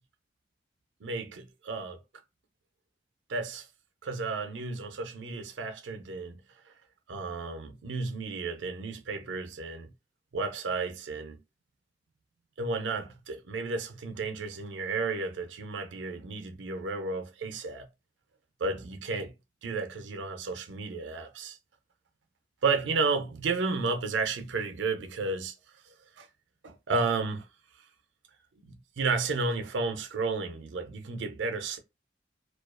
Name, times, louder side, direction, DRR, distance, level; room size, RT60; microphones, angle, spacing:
voice 1, 1.0-2.0 3.3-3.7 4.0-6.4 7.1-9.9 10.3-11.4 12.6-17.9 18.6-19.3 19.6-21.6 22.6-25.5 26.2-26.3 26.6-27.5 28.6-31.8, right 4 dB, 75° right, 0.5 m, -32 dB
2.3 x 2.3 x 2.3 m
head